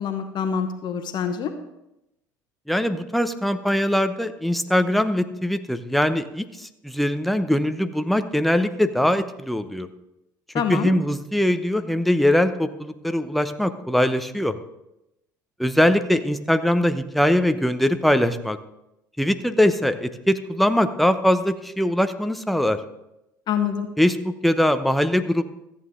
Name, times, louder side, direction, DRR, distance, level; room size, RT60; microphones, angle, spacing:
voice 1, 0.0-1.5 10.5-10.9 23.5-23.9, left 7 dB, 45° left, 7 dB, 1.1 m, -25 dB
voice 2, 2.7-9.9 10.7-14.6 15.6-18.6 19.2-22.8 24.0-25.5, left 1 dB, ahead, 9 dB, 0.8 m, -22 dB
14.0 x 8.7 x 3.8 m, 0.89 s
hypercardioid pair, 70°, 10 cm